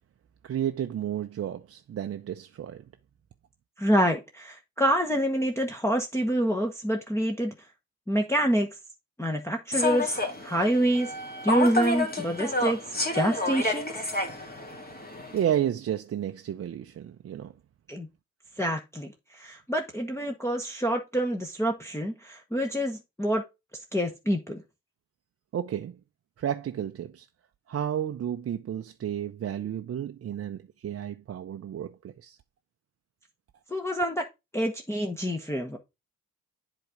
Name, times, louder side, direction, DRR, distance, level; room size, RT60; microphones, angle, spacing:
voice 1, 0.4-2.8 15.3-17.5 25.5-26.0 26.4-27.3 27.7-32.4, right 10 dB, 40° right, 0.6 m, -32 dB
voice 2, 3.8-7.5 8.1-8.8 9.2-11.1 11.4-12.8 13.1-14.0 17.9-18.1 18.6-23.4 23.9-24.6 33.7-34.2 34.5-35.8, right 1 dB, 5° left, 1.1 m, -27 dB
Human voice / Subway metro underground, 9.7-15.4, left 2 dB, 25° left, 2.2 m, -29 dB
7.8 x 3.8 x 5.0 m
hypercardioid pair, 55°, 38 cm